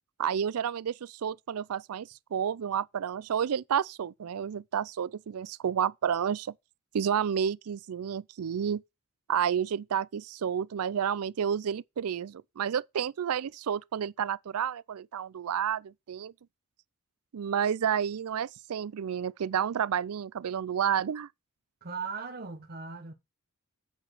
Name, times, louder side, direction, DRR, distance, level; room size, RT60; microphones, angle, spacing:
voice 1, 0.2-6.5 6.9-8.8 9.3-16.3 17.3-21.3, right 8 dB, 70° right, 0.4 m, -30 dB
voice 2, 21.8-23.1, right 5 dB, 45° right, 1.2 m, -38 dB
8.6 x 5.0 x 5.9 m
head